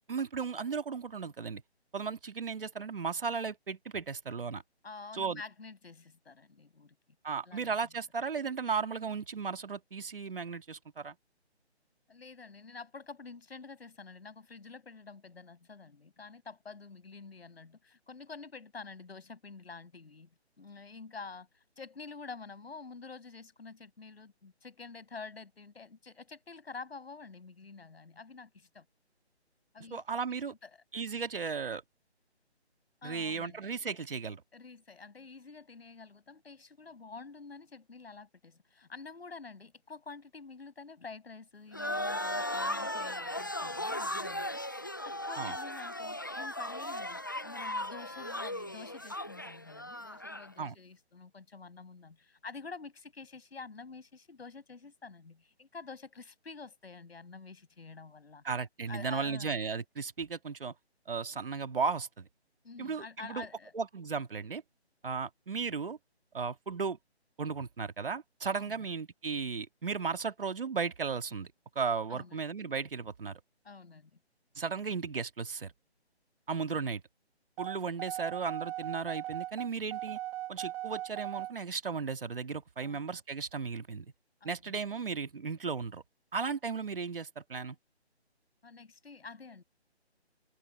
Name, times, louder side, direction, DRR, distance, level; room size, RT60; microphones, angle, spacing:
voice 1, 0.1-1.6 1.9-4.6 5.1-5.4 7.2-11.2 29.9-30.5 30.9-31.8 33.0-34.4 45.4-45.6 50.6-50.7 58.4-60.7 61.1-62.3 62.8-63.5 63.7-64.6 65.0-66.0 66.3-67.0 67.4-71.5 71.8-73.4 74.6-75.7 76.5-77.0 77.6-80.2 80.5-84.1 84.4-86.0 86.3-87.8, right 5 dB, 55° right, 2.2 m, -35 dB
voice 2, 4.8-7.0 7.5-7.7 12.1-20.3 20.6-21.5 21.8-28.8 29.7-30.0 30.3-30.8 33.0-33.9 34.5-58.4 58.8-59.6 62.6-63.7 68.6-68.9 72.1-72.4 73.6-74.1 82.8-83.2 84.4-84.8 88.6-89.6, left 4 dB, 65° left, 7.7 m, -48 dB
sound 1, 41.7-50.5, left 1 dB, 20° left, 0.6 m, -37 dB
sound 2, 77.6-81.5, right 15 dB, 5° right, 2.0 m, -38 dB
open air
hypercardioid pair, 170°, 33 cm